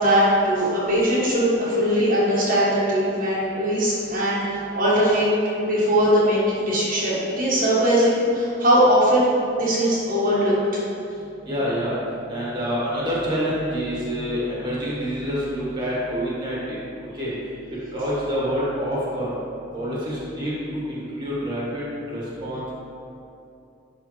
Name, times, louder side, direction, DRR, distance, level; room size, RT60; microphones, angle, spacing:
voice 1, 0.0-5.3 5.6-9.2 9.5-10.8, equal, 50° right, -8 dB, 1.2 m, -20 dB
voice 2, 11.4-12.0 12.3-16.7 17.1-17.3 17.7-19.3 19.7-22.6, equal, 25° right, -7 dB, 1.4 m, -27 dB
10.0 x 3.5 x 3.0 m, 2.7 s
head